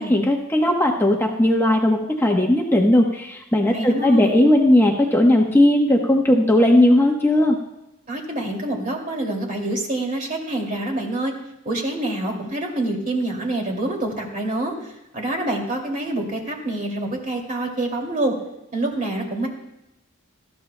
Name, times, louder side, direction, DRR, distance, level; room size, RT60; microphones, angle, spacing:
voice 1, 0.1-7.6, left 1 dB, 10° left, 0 dB, 1.0 m, -17 dB
voice 2, 3.7-4.4 8.1-11.3 11.6-18.3 18.7-19.5, right 1 dB, 40° right, 2 dB, 2.4 m, -26 dB
19.0 x 13.5 x 2.2 m, 0.92 s
head